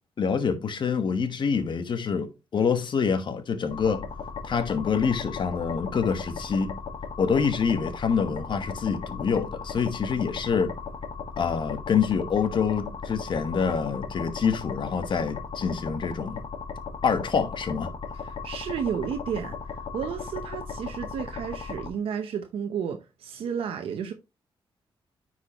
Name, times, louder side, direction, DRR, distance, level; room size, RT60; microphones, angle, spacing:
voice 1, 0.2-4.1 4.4-6.7 7.2-10.7 11.4-16.4 17.0-17.9, left 6 dB, 60° left, 1.3 m, -26 dB
sound 1, 3.7-21.9, left 5 dB, 80° left, 1.5 m, -37 dB
voice 2, 18.4-24.1, right 7 dB, 90° right, 0.8 m, -32 dB
10.0 x 4.7 x 2.9 m
cardioid pair, 85°, 9 cm